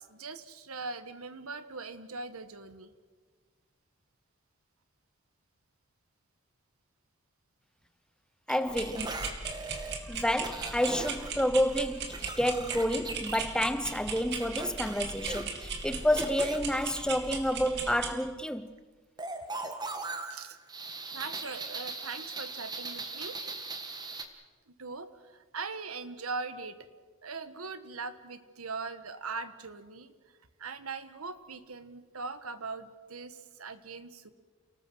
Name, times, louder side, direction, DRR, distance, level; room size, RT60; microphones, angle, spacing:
voice 1, 0.0-2.9 20.2-20.6 21.1-23.4 24.7-26.9 27.2-30.1 30.6-34.3, right 4 dB, 90° right, 1.5 m, -41 dB
voice 2, 8.5-9.2 10.0-18.7, equal, 5° left, 0.7 m, -29 dB
sound 1, 8.5-9.9 10.4-11.3 11.7-13.4 14.4-16.6 19.2-24.2, right 3 dB, 20° right, 1.7 m, -39 dB
sound 2, 8.7-18.1, right 5 dB, 50° right, 2.7 m, -38 dB
29.5 x 19.5 x 6.3 m
head